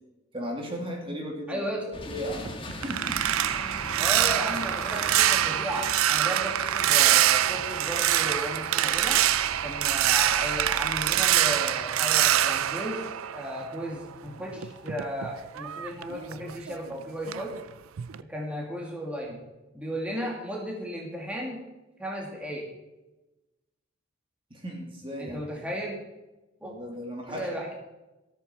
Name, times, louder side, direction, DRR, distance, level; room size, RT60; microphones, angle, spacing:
voice 1, 0.3-1.6 2.1-3.2 10.0-10.1 24.5-25.4 26.6-27.5, equal, 25° right, 0 dB, 2.4 m, -36 dB
voice 2, 1.5-1.8 4.0-9.2 9.6-13.0 13.3-17.5 18.3-19.4 19.7-21.6 22.0-22.7 25.2-26.0 26.6-26.7 27.3-27.7, equal, 5° right, -2 dB, 2.4 m, -35 dB
sound 1, 1.9-12.6, left 1 dB, 25° left, 1.4 m, -42 dB
sound 2, 2.3-13.9 14.3-16.9 17.3-17.6 18.0-18.2, right 12 dB, 85° right, 0.5 m, -25 dB
13.5 x 13.5 x 4.4 m, 1.0 s
head